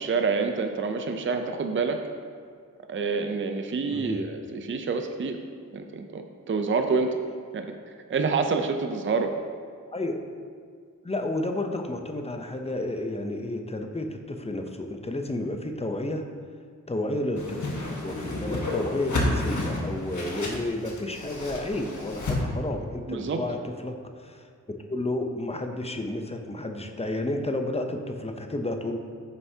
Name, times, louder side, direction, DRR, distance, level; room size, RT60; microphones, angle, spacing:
voice 1, 0.0-2.0 2.9-5.4 5.7-7.1 7.5-7.7 8.1-9.3 23.1-23.4, right 4 dB, 40° right, 5 dB, 0.5 m, -27 dB
voice 2, 3.9-4.2 9.9-10.2 11.0-16.2 16.9-24.5 24.9-29.0, left 1 dB, 20° left, 4 dB, 0.6 m, -31 dB
Whoosh swoosh swish, 17.4-22.4, left 2 dB, 65° left, 1.4 m, -30 dB
9.1 x 6.8 x 2.8 m, 2.2 s
wide cardioid pair, 90°, 32 cm